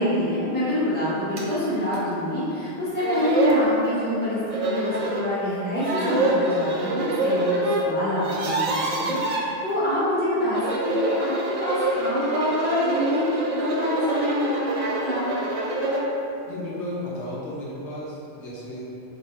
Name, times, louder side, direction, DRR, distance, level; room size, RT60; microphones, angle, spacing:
voice 1, 0.0-7.5 7.8-11.3 11.6-13.2 13.5-15.3, left 1 dB, 10° left, -12 dB, 1.1 m, -26 dB
sound 1, 1.4-1.5 1.9-2.0 2.7-2.8 3.0-3.6 4.5-5.2 5.8-7.8 8.1-9.4 10.4-16.1, right 2 dB, 65° right, 0.3 m, -26 dB
voice 2, 16.5-18.8, left 1 dB, 85° left, -7 dB, 1.1 m, -34 dB
3.3 x 3.1 x 3.1 m, 2.8 s
omnidirectional pair, 1.2 m